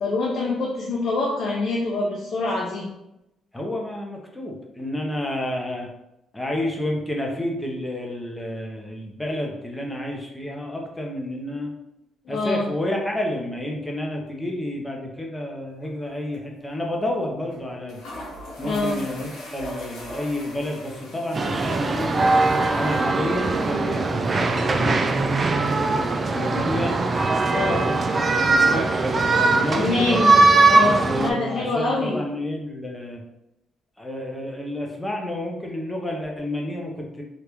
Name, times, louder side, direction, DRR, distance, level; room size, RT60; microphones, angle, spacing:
voice 1, 0.0-2.9 12.3-12.7 18.6-19.1 27.5-27.9 29.7-32.3, left 3 dB, 60° left, -3 dB, 0.6 m, -25 dB
voice 2, 3.5-5.9 6.3-11.7 12.3-18.0 18.6-22.2 22.7-27.0 27.5-30.0 31.0-33.2 34.0-37.2, left 1 dB, 10° left, 0 dB, 0.7 m, -30 dB
sound 1, 15.8-16.1 16.3-16.4 17.5-17.6 17.9-27.3, left 1 dB, 80° left, 1.2 m, -42 dB
sound 2, 21.3-31.3, right 3 dB, 35° right, 0.3 m, -20 dB
3.0 x 2.4 x 3.4 m, 0.88 s
cardioid pair, 90°, 0 cm